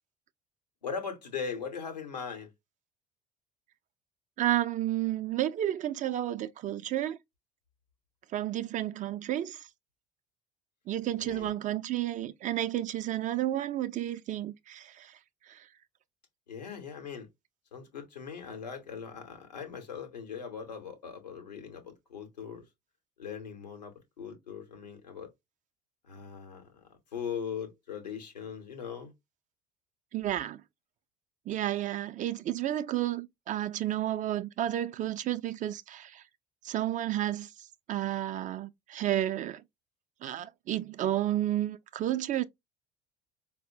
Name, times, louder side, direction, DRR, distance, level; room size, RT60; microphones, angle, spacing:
voice 1, 0.8-2.5 11.2-11.5 16.5-17.3 17.7-22.7 23.2-25.3 26.0-26.8 27.1-29.1, left 6 dB, 90° left, 0.8 m, -40 dB
voice 2, 4.4-7.2 8.3-9.6 10.9-15.1 15.5-15.6 30.1-30.6 31.5-36.2 36.6-37.5 37.9-39.6 40.2-42.4, right 12 dB, 40° right, 0.4 m, -31 dB
4.2 x 2.0 x 2.6 m
hypercardioid pair, 60°, 21 cm